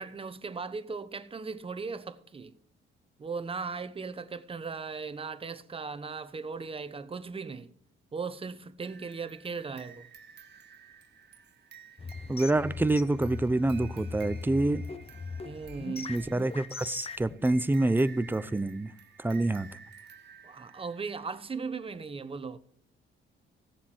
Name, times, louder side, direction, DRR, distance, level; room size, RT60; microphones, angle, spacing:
voice 1, 0.0-2.5 3.2-7.7 8.1-10.1 15.4-16.2 20.4-22.6, right 4 dB, 30° right, 1.0 m, -38 dB
sound 1, 8.8-21.4, right 7 dB, 60° right, 1.2 m, -53 dB
sound 2, 12.0-17.3, left 4 dB, 30° left, 0.8 m, -40 dB
voice 2, 12.3-14.8 16.1-18.9 19.2-19.7, right 2 dB, 10° right, 0.6 m, -27 dB
16.5 x 7.2 x 4.6 m
cardioid pair, 90°, 20 cm